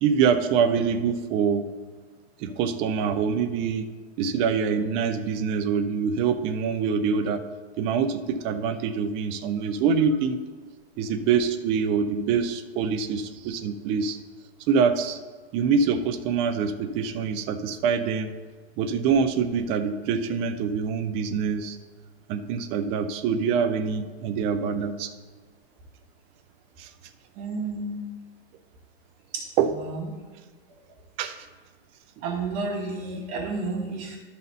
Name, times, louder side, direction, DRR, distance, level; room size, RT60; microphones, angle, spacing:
voice 1, 0.0-1.6 2.4-3.9 4.2-7.4 7.8-10.4 11.0-14.2 14.7-15.2 15.5-18.3 18.8-21.8 22.3-25.1 26.8-26.9 29.6-29.7 31.2-31.4, right 6 dB, 20° right, 8 dB, 0.3 m, -25 dB
voice 2, 27.3-28.0 29.3-29.5 29.7-30.1 32.2-34.2, right 3 dB, 35° right, -1 dB, 1.4 m, -31 dB
12.0 x 4.1 x 5.5 m, 1.4 s
supercardioid pair, 150°, 32 cm